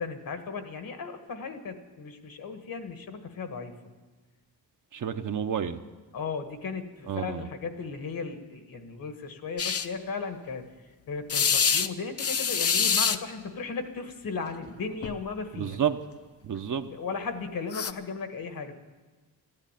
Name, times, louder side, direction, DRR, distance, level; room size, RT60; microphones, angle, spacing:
voice 1, 0.0-3.7 6.1-10.6 11.1-15.8 16.9-18.8, left 4 dB, 60° left, 7 dB, 1.6 m, -36 dB
voice 2, 4.9-5.8 7.1-7.5 15.6-16.0 16.4-16.9, right 8 dB, 50° right, 6 dB, 0.8 m, -30 dB
sound 1, 9.6-9.9 11.3-11.9 12.2-13.2 14.6-14.7 15.0-15.2 17.7-17.9, left 6 dB, 40° left, 0.6 m, -25 dB
14.0 x 10.5 x 9.0 m, 1.3 s
cardioid pair, 105°, 38 cm